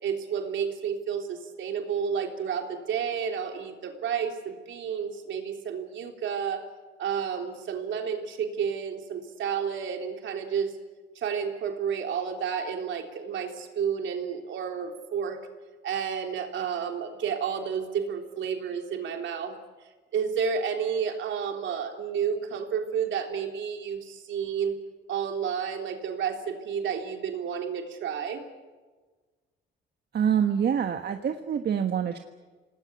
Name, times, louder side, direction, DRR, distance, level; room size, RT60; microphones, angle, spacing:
voice 1, 0.0-6.6 7.0-10.7 11.2-15.4 15.8-19.6 20.1-24.8 25.1-28.4, right 7 dB, 70° right, 4 dB, 3.6 m, -31 dB
voice 2, 30.1-32.2, right 8 dB, 55° right, 6 dB, 1.5 m, -26 dB
27.5 x 19.0 x 8.3 m, 1.3 s
cardioid pair, 90°, 20 cm